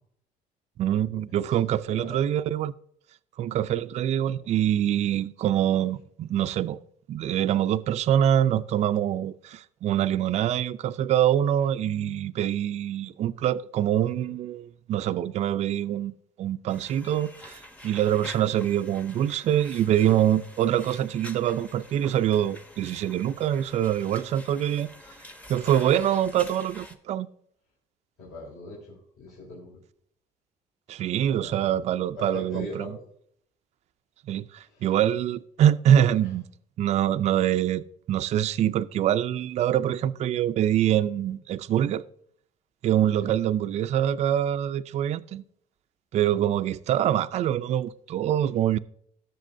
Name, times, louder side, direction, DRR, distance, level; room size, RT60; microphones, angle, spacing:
voice 1, 0.8-2.7 3.4-6.8 7.1-24.9 25.5-27.3 30.9-32.9 34.3-36.4 36.8-42.0 42.8-45.4 46.1-48.8, right 10 dB, 45° right, 0.4 m, -25 dB
sound 1, 16.7-27.0, left 1 dB, 10° left, 0.9 m, -46 dB
voice 2, 28.2-29.8 31.3-31.9 32.2-32.9 34.6-35.0 36.2-36.3 43.2-43.3, left 1 dB, 65° left, 4.8 m, -40 dB
18.0 x 6.9 x 2.6 m
cardioid pair, 125°, 15 cm